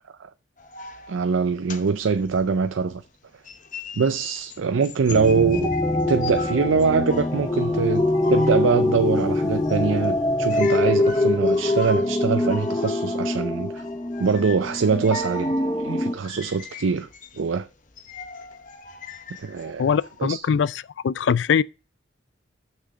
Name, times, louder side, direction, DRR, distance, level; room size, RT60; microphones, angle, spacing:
sound 1, 0.6-3.1 3.4-20.4, left 5 dB, 40° left, 0.9 m, -41 dB
voice 1, 1.1-3.0 4.0-5.7 6.1-13.8 14.2-15.6 15.8-17.1 17.4-17.7 19.4-19.9 20.3-20.4, right 5 dB, 85° right, 0.5 m, -23 dB
sound 2, 5.1-16.1, left 2 dB, 20° left, 0.6 m, -24 dB
sound 3, 6.5-11.8, left 1 dB, 15° right, 2.6 m, -48 dB
voice 2, 19.8-21.6, left 7 dB, 70° left, 0.4 m, -22 dB
6.4 x 6.1 x 6.1 m
head